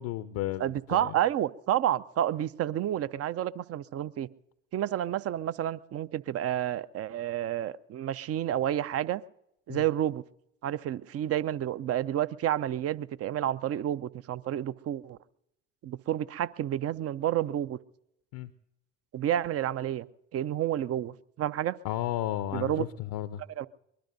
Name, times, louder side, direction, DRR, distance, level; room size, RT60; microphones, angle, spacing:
voice 1, 0.0-1.2 9.7-9.9 18.3-18.5 21.8-23.4, left 13 dB, 60° left, 0.7 m, -33 dB
voice 2, 0.6-4.3 4.7-9.2 9.7-10.2 10.6-15.2 15.8-17.8 19.1-20.1 20.3-21.8 22.5-22.9 23.6-23.7, right 11 dB, 40° right, 0.5 m, -30 dB
23.0 x 21.0 x 2.6 m
figure-of-eight pair, 55°, 39 cm